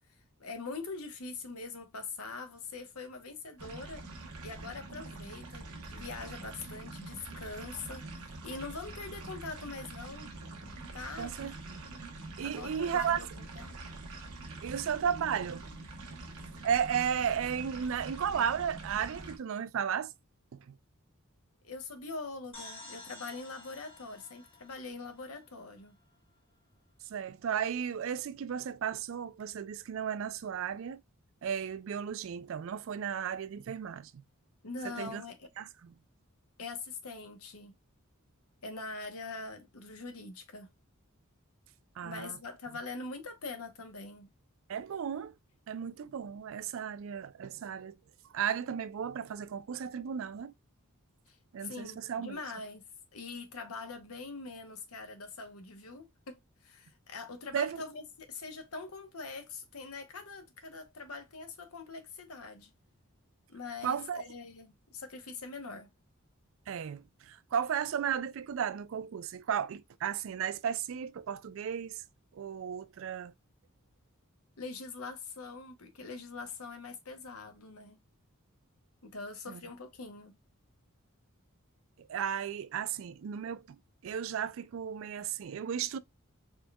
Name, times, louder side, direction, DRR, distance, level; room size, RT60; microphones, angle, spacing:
voice 1, 0.4-4.1 4.4-10.3 10.9-11.6 12.4-13.7 21.6-25.9 34.6-35.5 36.6-37.7 38.6-40.7 42.0-44.3 51.3-51.4 51.6-52.8 53.1-62.7 63.5-65.9 74.6-78.0 79.0-80.3, left 3 dB, 80° left, 0.9 m, -43 dB
sound 1, 3.6-19.4, right 2 dB, 90° right, 1.1 m, -45 dB
voice 2, 11.2-11.5 12.4-13.2 14.6-15.7 16.6-20.1 20.5-20.8 27.1-31.0 31.4-34.2 34.8-35.2 35.6-35.9 42.0-42.4 44.7-45.3 45.7-48.0 48.3-50.5 51.5-52.4 57.5-57.8 63.8-64.2 66.7-72.0 72.3-73.3 79.5-79.6 82.0-83.6 84.0-86.0, right 8 dB, 65° right, 0.3 m, -34 dB
sound 2, 22.5-26.2, left 2 dB, 25° left, 1.2 m, -51 dB
4.3 x 3.3 x 2.2 m
head